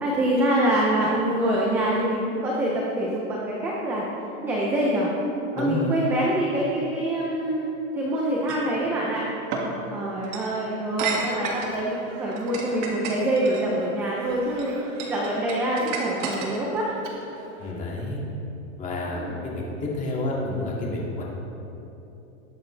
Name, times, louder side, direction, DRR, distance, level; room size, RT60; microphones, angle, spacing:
voice 1, 0.0-4.0 4.4-5.1 5.5-7.7 8.0-9.2 9.9-14.7 15.1-16.9 19.1-19.4, right 1 dB, 5° right, -4 dB, 0.3 m, -25 dB
voice 2, 5.5-5.9 17.6-18.2 18.8-21.2, left 2 dB, 20° left, -3 dB, 2.0 m, -29 dB
sound 1, 8.5-8.7 9.5-9.7 10.2-10.5 11.0-11.7 12.3-13.6 14.3-14.6 15.0-16.8, right 5 dB, 40° right, 1.9 m, -31 dB
Speech, 11.2-17.7, right 3 dB, 65° right, 2.3 m, -44 dB
20.0 x 8.6 x 3.2 m, 3.0 s
supercardioid pair, 155°, 40 cm